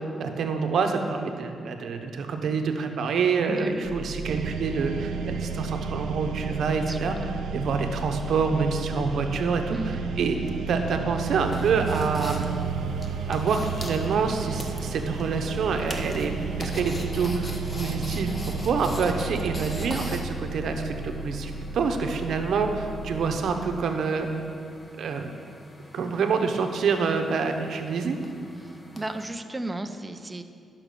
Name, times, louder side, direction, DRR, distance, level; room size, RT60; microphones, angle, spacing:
voice 1, 0.0-10.4 10.7-12.5 13.3-16.3 16.6-18.4 18.6-24.3 25.0-25.3 25.9-28.2, right 5 dB, 70° right, 5 dB, 0.9 m, -27 dB
voice 2, 3.5-3.9 6.8-7.1 9.7-10.0 29.0-30.4, right 2 dB, 15° right, 7 dB, 0.5 m, -34 dB
sound 1, 3.8-23.4, right 1 dB, 70° left, 2.1 m, -37 dB
sound 2, 4.3-20.2, right 7 dB, 90° right, 0.4 m, -34 dB
sound 3, 11.4-29.3, left 1 dB, 25° left, 1.0 m, -43 dB
10.5 x 5.9 x 6.8 m, 2.4 s
cardioid pair, 110°, 0 cm